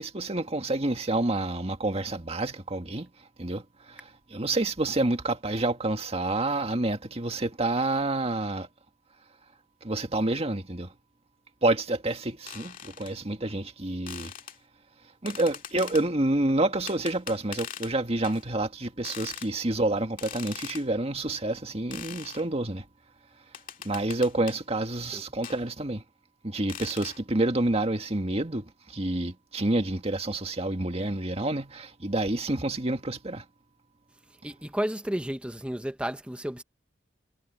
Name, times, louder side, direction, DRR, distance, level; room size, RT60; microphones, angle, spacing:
voice 1, 0.0-3.1 3.4-3.6 3.9-8.7 9.8-10.9 11.6-14.3 15.2-22.8 23.8-26.0 26.4-33.4, right 2 dB, 35° right, 1.8 m, -28 dB
sound 1, 12.5-13.1 14.1-14.6 15.3-16.1 16.9-17.9 18.2-18.4 19.0-19.5 20.2-20.9 21.9-22.4 23.5-24.6 25.4-25.6 26.7-27.2, left 8 dB, 50° left, 2.1 m, -41 dB
voice 2, 34.4-36.6, equal, 5° right, 0.8 m, -32 dB
head